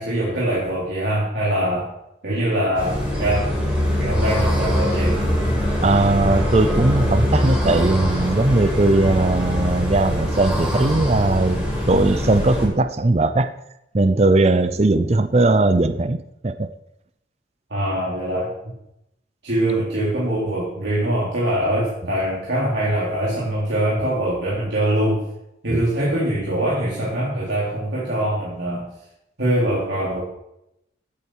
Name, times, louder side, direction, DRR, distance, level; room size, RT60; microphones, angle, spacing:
voice 1, 0.0-1.9 2.2-3.5 4.0-5.2 17.7-18.5 19.4-25.2 25.6-28.9 29.4-30.2, right 1 dB, 70° right, 3.3 m, -23 dB
sound 1, 2.7-12.7, equal, 5° right, 4.5 m, -22 dB
voice 2, 5.8-13.5 13.9-16.7 25.7-25.9, right 2 dB, 35° right, 0.6 m, -19 dB
16.0 x 8.6 x 4.7 m
head